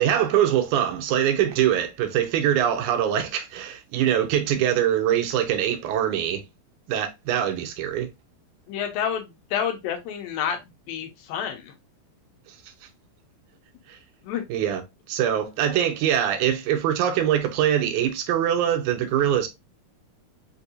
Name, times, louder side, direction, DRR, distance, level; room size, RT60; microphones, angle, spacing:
voice 1, 0.0-6.4 6.9-8.1 12.5-12.6 13.9-14.0 14.5-14.8 15.1-19.5, right 10 dB, 85° right, 1.7 m, -23 dB
voice 2, 8.7-9.3 9.5-10.6 10.9-11.6 14.3-14.4, left 8 dB, 85° left, 2.5 m, -28 dB
6.2 x 2.7 x 2.6 m
omnidirectional pair, 4.2 m